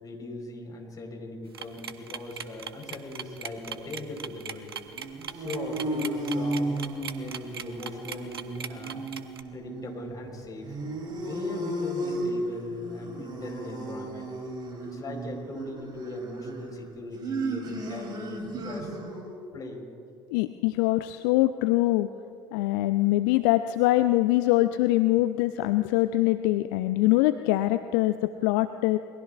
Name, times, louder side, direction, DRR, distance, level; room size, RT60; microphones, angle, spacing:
voice 1, 0.0-4.8 5.3-6.8 7.1-9.0 9.5-10.8 11.1-14.3 14.8-19.0 19.5-19.9, left 2 dB, 30° left, 2 dB, 4.0 m, -39 dB
sound 1, 1.5-9.4, right 8 dB, 80° right, 0.6 m, -38 dB
sound 2, 4.9-19.4, right 1 dB, 35° right, 3.0 m, -34 dB
voice 2, 20.3-22.1 22.5-29.0, left 16 dB, 60° left, 11 dB, 0.5 m, -23 dB
27.5 x 21.5 x 2.4 m, 2.4 s
figure-of-eight pair, 60°, 12 cm